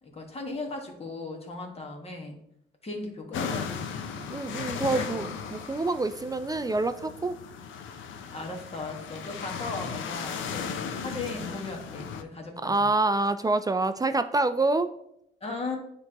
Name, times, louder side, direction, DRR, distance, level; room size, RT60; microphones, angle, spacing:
voice 1, 0.0-2.4 2.8-4.3 4.9-5.0 8.3-12.9 15.4-15.8, left 3 dB, 30° left, 1 dB, 1.6 m, -37 dB
sound 1, 3.3-12.2, left 6 dB, 80° left, 0.6 m, -36 dB
voice 2, 4.3-7.4 12.6-14.9, right 2 dB, 20° right, 10 dB, 0.3 m, -26 dB
9.4 x 3.5 x 2.9 m, 0.77 s
cardioid pair, 90°, 20 cm